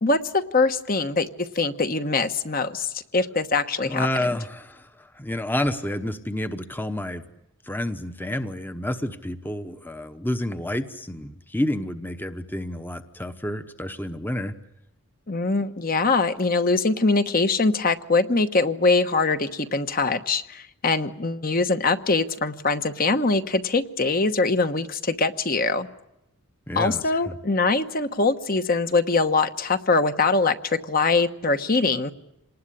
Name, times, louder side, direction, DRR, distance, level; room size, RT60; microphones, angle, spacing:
voice 1, 0.0-4.1 15.3-25.9 26.8-32.1, left 3 dB, 40° left, 9 dB, 1.1 m, -23 dB
voice 2, 3.8-7.2 7.6-14.5 26.7-27.3, left 1 dB, 10° left, 10 dB, 0.9 m, -29 dB
27.0 x 19.5 x 10.0 m, 0.89 s
head